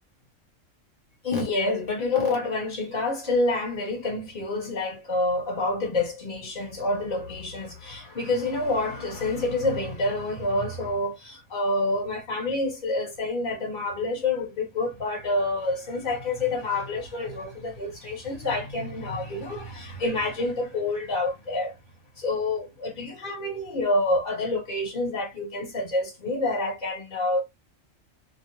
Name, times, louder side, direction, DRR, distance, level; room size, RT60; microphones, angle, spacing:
voice 1, 1.2-21.7 22.2-27.4, left 2 dB, 40° left, 1.3 m, -28 dB
2.6 x 2.0 x 3.2 m
omnidirectional pair, 1.3 m